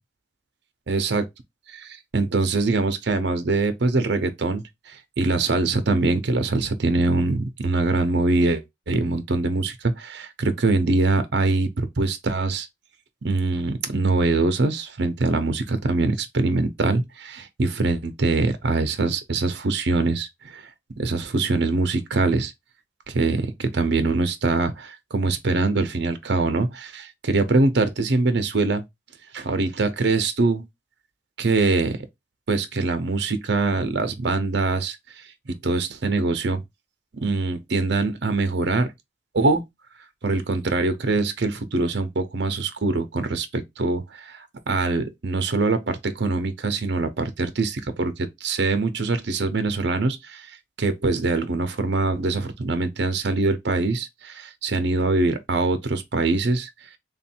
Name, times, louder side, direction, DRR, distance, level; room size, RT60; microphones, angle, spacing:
voice 1, 0.9-1.2 1.7-12.7 13.2-20.7 21.0-22.5 23.1-28.8 29.3-30.7 31.4-32.0 32.5-35.0 35.5-36.6 37.2-38.9 39.3-39.6 40.2-56.7, right 3 dB, 60° right, 0.7 m, -23 dB
3.5 x 2.6 x 4.3 m
head